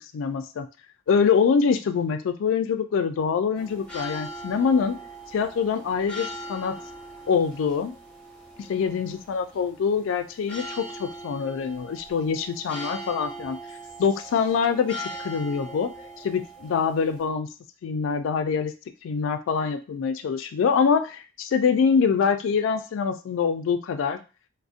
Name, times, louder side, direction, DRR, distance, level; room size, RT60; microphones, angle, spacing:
voice 1, 0.1-0.7 1.1-5.0 5.3-6.8 7.3-7.9 8.6-13.6 14.0-15.9 16.2-17.5 17.8-18.7 19.0-24.2, left 6 dB, 80° left, 8 dB, 0.3 m, -24 dB
sound 1, 3.5-17.2, right 1 dB, 5° left, 0.7 m, -40 dB
2.5 x 2.0 x 2.4 m, 0.32 s
head